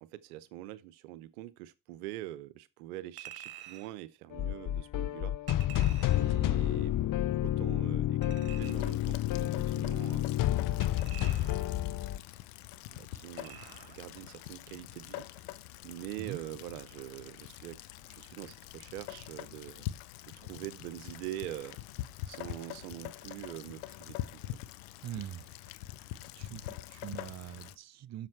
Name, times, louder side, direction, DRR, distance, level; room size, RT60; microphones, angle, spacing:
voice 1, 0.0-5.4 6.2-6.9 7.4-10.3 11.3-11.8 12.9-15.3 15.8-17.8 18.1-19.9 20.3-21.8 22.3-24.6, right 15 dB, 90° right, 0.7 m, -44 dB
Chink clink, 3.2-4.0 5.5-6.4 8.2-9.0 10.8-11.8 13.4-14.0 14.4-14.5, right 11 dB, 55° right, 1.6 m, -49 dB
sound 1, 4.3-12.2, left 13 dB, 50° left, 0.6 m, -30 dB
Rain, 8.6-27.8, left 15 dB, 85° left, 0.7 m, -45 dB
voice 2, 25.0-25.7 26.4-28.3, right 11 dB, 40° right, 0.5 m, -43 dB
7.5 x 6.7 x 4.3 m
hypercardioid pair, 50°, 43 cm